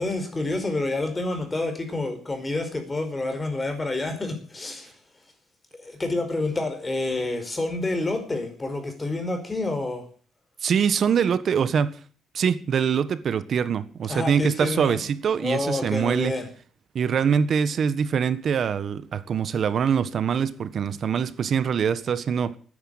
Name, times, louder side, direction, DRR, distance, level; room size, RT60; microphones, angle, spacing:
voice 1, 0.0-5.0 5.8-10.0 14.1-15.0 15.4-16.5, left 2 dB, 20° left, 5.0 m, -28 dB
voice 2, 10.6-12.0 12.3-16.3 16.9-22.6, right 7 dB, 55° right, 1.4 m, -24 dB
12.5 x 10.0 x 9.3 m
cardioid pair, 90°, 0 cm